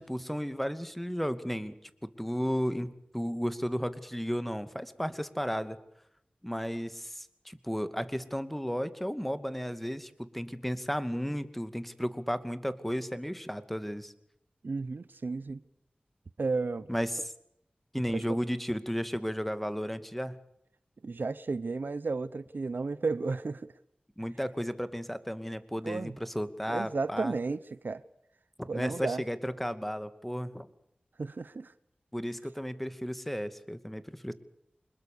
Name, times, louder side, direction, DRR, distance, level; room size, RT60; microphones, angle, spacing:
voice 1, 0.0-1.7 2.0-5.8 6.4-14.1 16.9-17.3 17.9-20.4 24.2-27.3 28.6-30.7 32.1-34.3, equal, 5° left, 2.4 m, -34 dB
voice 2, 14.6-15.6 16.4-16.9 18.1-18.2 21.0-23.7 25.8-26.1 26.7-28.0 28.7-29.2 31.2-31.7, right 3 dB, 75° right, 0.9 m, -33 dB
26.0 x 21.5 x 6.9 m
cardioid pair, 40°, 3 cm